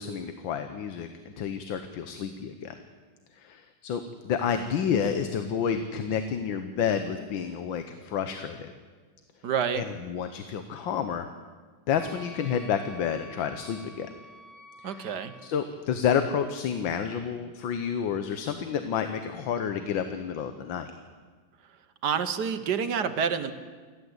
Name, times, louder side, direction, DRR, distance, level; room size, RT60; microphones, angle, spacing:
voice 1, 0.0-2.8 3.3-8.7 9.7-11.3 11.9-14.1 14.8-20.9, left 7 dB, 85° left, 9 dB, 1.7 m, -30 dB
voice 2, 9.4-9.8 14.8-15.3 22.0-23.5, right 7 dB, 65° right, 10 dB, 1.6 m, -28 dB
Wind instrument woodwind instrument, 11.9-15.5, equal, ahead, 2.4 m, -50 dB
28.5 x 12.0 x 8.0 m, 1.5 s
omnidirectional pair, 2.0 m